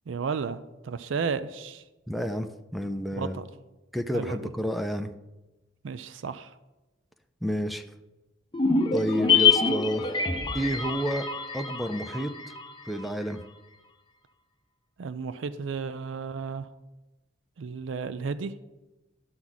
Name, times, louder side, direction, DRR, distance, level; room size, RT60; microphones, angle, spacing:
voice 1, 0.1-1.8 3.2-3.4 4.1-4.5 5.8-6.5 15.0-16.7 17.6-18.5, right 5 dB, 75° right, 13 dB, 0.4 m, -33 dB
voice 2, 2.1-3.4 3.9-5.1 7.4-7.8 8.9-10.1 10.5-11.3 11.5-12.3 12.9-13.4, equal, ahead, 8 dB, 0.4 m, -29 dB
sound 1, 8.5-13.0 13.3-13.4, left 5 dB, 25° left, 0.8 m, -25 dB
11.5 x 6.0 x 4.0 m, 1.0 s
head